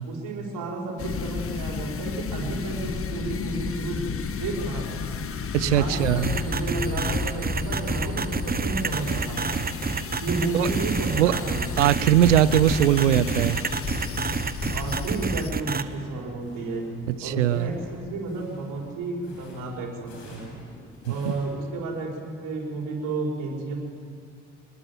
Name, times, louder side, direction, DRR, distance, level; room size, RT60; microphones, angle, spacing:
voice 1, 0.0-5.1 5.6-9.7 10.2-11.9 14.7-16.9 17.2-20.5 21.0-23.8, right 3 dB, 65° right, -1 dB, 5.7 m, -32 dB
sound 1, 1.0-15.5, left 5 dB, 40° left, 1.5 m, -32 dB
voice 2, 5.5-6.3 10.5-10.7 11.2-11.3 11.8-13.6 17.2-17.7 21.3-21.4, right 11 dB, 85° right, 17 dB, 0.8 m, -20 dB
sound 2, 6.2-15.8, right 5 dB, 25° right, 1.2 m, -28 dB
sound 3, 8.6-16.0 16.3-21.5, left 2 dB, 75° left, 7.8 m, -47 dB
26.5 x 20.5 x 7.6 m, 2.3 s
hypercardioid pair, 55°, 35 cm